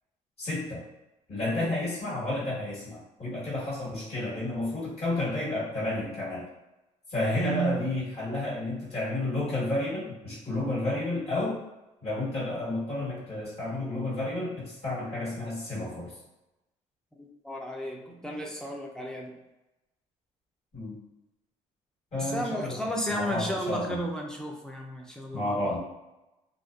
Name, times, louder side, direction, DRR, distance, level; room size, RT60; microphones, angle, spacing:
voice 1, 0.4-0.8 1.3-6.5 7.1-11.6 12.0-16.2 20.7-21.0 22.1-22.8 23.1-24.0 25.3-25.8, left 2 dB, 50° left, -8 dB, 1.4 m, -31 dB
voice 2, 7.3-7.9 17.1-19.4 22.1-25.8, right 1 dB, 5° left, -1 dB, 0.4 m, -33 dB
2.4 x 2.1 x 2.3 m, 0.98 s
cardioid pair, 90°, 14 cm